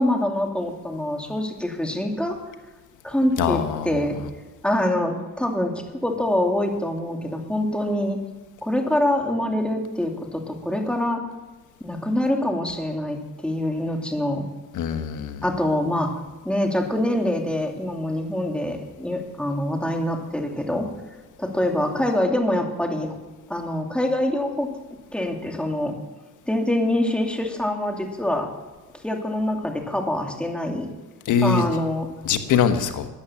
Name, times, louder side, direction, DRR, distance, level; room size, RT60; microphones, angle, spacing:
voice 1, 0.0-2.4 3.0-4.2 4.6-8.2 8.6-11.2 11.8-14.4 15.4-16.1 16.4-20.9 21.4-23.2 23.5-24.7 25.1-26.0 26.5-28.5 29.0-30.9 31.4-32.1, left 1 dB, 5° left, 2 dB, 2.5 m, -25 dB
voice 2, 3.4-3.9 14.7-15.4 31.3-31.7 32.2-33.1, left 7 dB, 80° left, 9 dB, 1.3 m, -22 dB
13.0 x 9.9 x 7.1 m, 1.2 s
cardioid pair, 90°, 30 cm